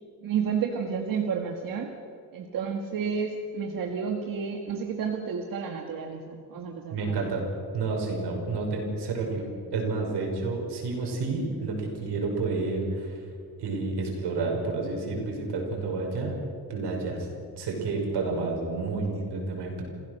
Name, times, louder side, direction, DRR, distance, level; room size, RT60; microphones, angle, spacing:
voice 1, 0.2-1.9 2.3-7.2, right 6 dB, 60° right, 2 dB, 1.8 m, -31 dB
voice 2, 6.9-7.4 7.7-9.5 9.7-13.2 13.6-16.3 16.7-17.3 17.6-19.8, right 3 dB, 90° right, 1 dB, 5.9 m, -30 dB
27.5 x 16.0 x 6.5 m, 2.4 s
wide cardioid pair, 180°, 39 cm